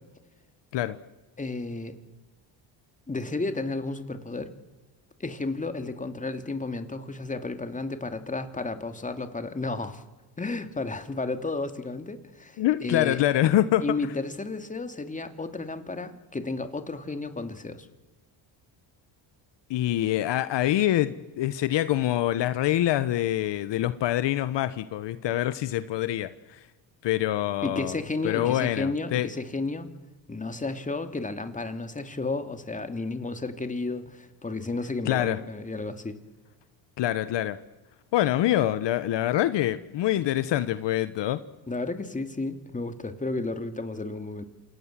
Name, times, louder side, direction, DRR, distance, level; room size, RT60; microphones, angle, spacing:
voice 1, 1.4-2.0 3.1-4.5 5.2-10.0 10.4-13.2 13.8-17.9 27.6-29.9 30.3-36.2 41.7-44.4, left 3 dB, 15° left, 8 dB, 2.7 m, -32 dB
voice 2, 12.6-13.8 19.7-26.6 27.0-28.0 28.2-29.3 35.0-35.4 37.0-37.6 38.1-41.4, left 13 dB, 70° left, 14 dB, 1.2 m, -25 dB
28.0 x 28.0 x 7.5 m, 1.2 s
cardioid pair, 105°, 45 cm